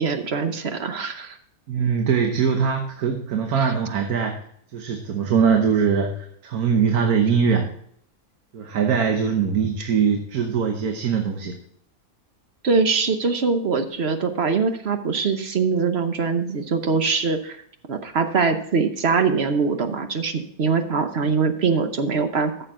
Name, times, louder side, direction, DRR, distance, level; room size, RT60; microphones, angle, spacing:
voice 1, 0.0-1.4 3.6-3.7 12.6-17.6 17.9-22.5, right 5 dB, 50° right, 8 dB, 1.0 m, -23 dB
voice 2, 1.7-4.3 4.7-7.7 8.5-11.6, right 6 dB, 85° right, 4 dB, 1.5 m, -22 dB
13.5 x 6.8 x 3.7 m, 0.66 s
omnidirectional pair, 1.5 m